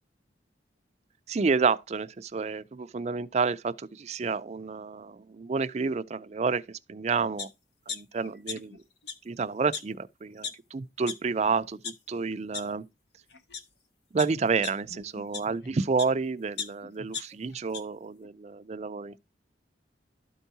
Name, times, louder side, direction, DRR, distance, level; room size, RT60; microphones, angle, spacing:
voice 1, 1.3-7.5 7.9-8.8 9.3-12.8 14.1-19.2, right 4 dB, 35° right, 0.4 m, -30 dB
sound 1, 7.4-7.5 7.9-8.8 9.0-9.1 9.7-9.8 10.4-10.5 11.1-11.2 11.6-11.9 12.5-12.6 13.3-13.6 14.2-16.1 16.6-17.8 18.2-18.3, left 6 dB, 65° left, 0.9 m, -37 dB
12.5 x 4.6 x 2.7 m
head